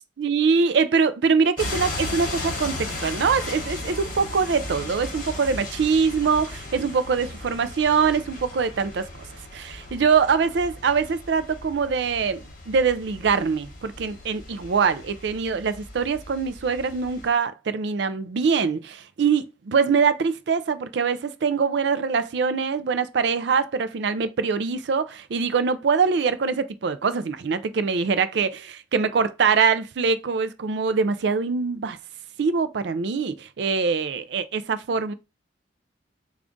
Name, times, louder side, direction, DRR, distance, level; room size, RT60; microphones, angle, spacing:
voice 1, 0.2-9.1 9.5-32.0 32.4-35.1, right 5 dB, 65° right, 0.4 m, -23 dB
sound 1, 1.6-17.3, left 2 dB, 45° left, 1.0 m, -36 dB
3.5 x 2.4 x 3.7 m
head